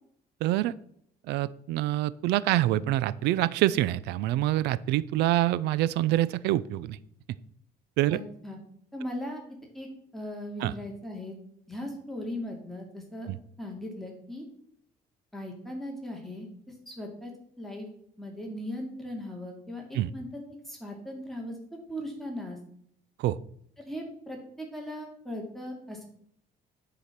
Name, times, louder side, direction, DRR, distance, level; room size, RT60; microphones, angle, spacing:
voice 1, 0.4-0.7 1.3-7.0 8.0-8.2 10.6-10.7 13.3-13.4 19.9-20.1 23.2-23.4, right 15 dB, 85° right, 19 dB, 0.5 m, -26 dB
voice 2, 8.1-8.6 8.9-9.4 9.7-9.9 10.1-11.4 11.7-13.3 13.6-14.4 15.3-17.3 17.6-17.9 18.2-20.3 20.7-21.6 21.9-22.6 23.8-26.1, left 1 dB, ahead, 0 dB, 2.5 m, -38 dB
11.0 x 5.0 x 5.8 m, 0.67 s
cardioid pair, 110°, 17 cm